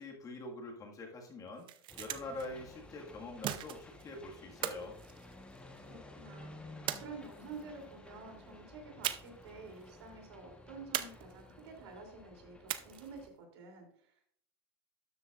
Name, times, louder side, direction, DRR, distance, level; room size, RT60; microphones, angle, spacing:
voice 1, 0.0-1.7 2.0-5.0, left 2 dB, 25° left, 1 dB, 1.8 m, -45 dB
sound 1, 1.5-2.5 3.4-4.1 4.6-5.9 6.9-7.6 9.0-9.5 9.8-9.9 10.9-11.7 12.7-13.2, right 12 dB, 35° right, 0.6 m, -39 dB
sound 2, 1.9-13.3, left 2 dB, 5° left, 1.2 m, -54 dB
voice 2, 5.8-14.3, right 4 dB, 80° right, 3 dB, 3.1 m, -50 dB
12.5 x 7.5 x 2.5 m, 0.63 s
supercardioid pair, 135°, 14 cm